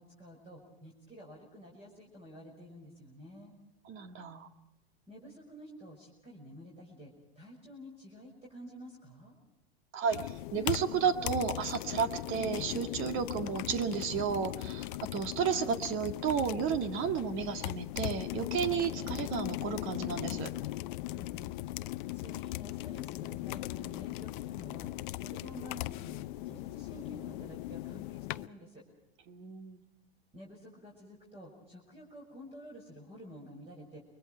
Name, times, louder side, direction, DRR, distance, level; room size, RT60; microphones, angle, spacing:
voice 1, 0.0-3.5 5.1-9.3 21.1-28.9 30.3-34.0, equal, 20° right, -2 dB, 6.0 m, -50 dB
voice 2, 3.9-4.5 9.9-20.5 29.3-29.8, right 7 dB, 40° right, 9 dB, 1.9 m, -32 dB
sound 1, 10.1-28.5, left 18 dB, 50° left, 0.7 m, -38 dB
29.0 x 23.0 x 4.5 m, 0.92 s
hypercardioid pair, 95°, 32 cm